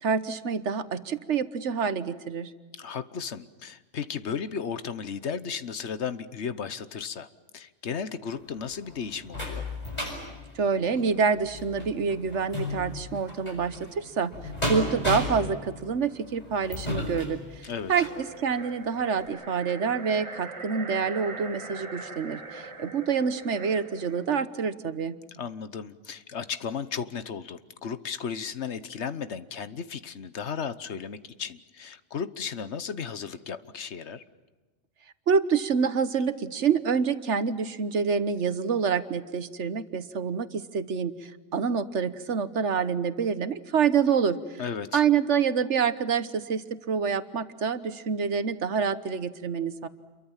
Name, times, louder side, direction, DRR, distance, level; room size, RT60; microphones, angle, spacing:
voice 1, 0.0-2.5 10.5-14.3 14.7-17.4 17.9-25.2 35.3-44.6 44.9-49.9, right 6 dB, 75° right, 13 dB, 1.5 m, -27 dB
voice 2, 2.8-9.7 17.6-17.9 25.3-34.2 44.6-45.0, left 6 dB, 70° left, 14 dB, 1.3 m, -35 dB
sound 1, 8.4-18.2 18.8-18.9 19.3-19.4, left 2 dB, 35° left, 7.2 m, -35 dB
sound 2, 17.9-24.4, right 3 dB, 25° right, 1.1 m, -41 dB
28.5 x 23.0 x 7.4 m, 1.3 s
omnidirectional pair, 1.2 m